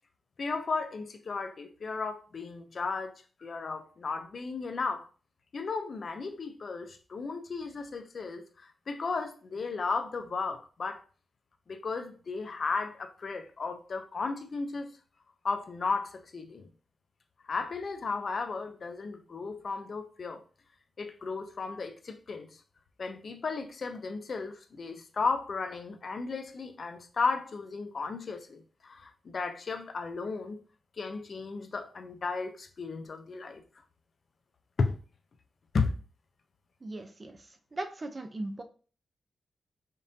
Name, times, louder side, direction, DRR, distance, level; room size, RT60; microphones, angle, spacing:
voice 1, 0.4-5.0 5.5-11.0 11.7-14.9 15.4-16.7 17.4-20.4 21.0-22.6 23.0-30.6 31.0-33.6 34.8-35.0 35.7-35.9, left 4 dB, 45° left, 0.5 m, -34 dB
voice 2, 36.8-38.6, right 2 dB, 30° right, 0.4 m, -39 dB
5.2 x 2.6 x 2.6 m
wide cardioid pair, 140°, 0 cm